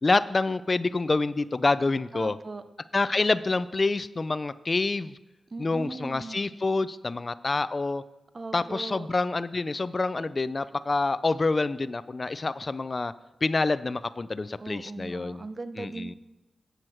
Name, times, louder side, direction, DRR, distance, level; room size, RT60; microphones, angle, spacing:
voice 1, 0.0-2.4 2.9-5.1 5.6-8.0 8.5-13.1 13.4-15.4 15.8-16.1, left 3 dB, 40° left, 14 dB, 0.3 m, -27 dB
voice 2, 2.1-2.6 5.5-6.5 8.3-9.1 14.6-16.1, right 3 dB, 40° right, 11 dB, 0.6 m, -38 dB
7.8 x 7.5 x 6.3 m, 1.0 s
cardioid pair, 75°, 0 cm